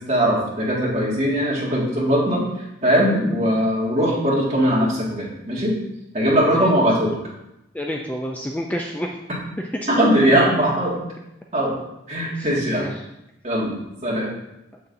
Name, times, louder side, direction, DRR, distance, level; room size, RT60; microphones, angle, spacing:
voice 1, 0.1-2.4 2.8-5.7 6.1-7.1 9.9-11.0 11.5-11.7 12.1-12.9 13.4-14.3, equal, 35° right, -5 dB, 1.8 m, -20 dB
voice 2, 7.7-9.2 9.6-9.9 12.3-13.0 14.2-14.4, equal, 10° left, 0 dB, 0.3 m, -29 dB
6.8 x 6.6 x 2.6 m, 0.86 s
head